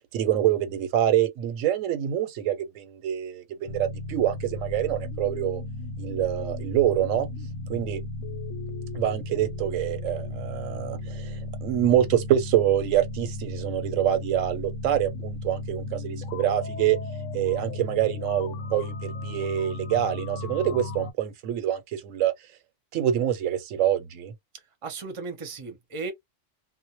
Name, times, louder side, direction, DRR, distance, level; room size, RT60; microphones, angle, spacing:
voice 1, 0.1-5.6 6.0-7.3 7.7-8.0 8.9-17.0 17.3-22.3 22.9-24.3, right 11 dB, 90° right, 1.0 m, -26 dB
sound 1, 3.7-21.1, left 2 dB, 85° left, 1.0 m, -35 dB
voice 2, 24.8-26.1, right 4 dB, 35° right, 0.6 m, -35 dB
2.2 x 2.0 x 2.8 m
omnidirectional pair, 1.3 m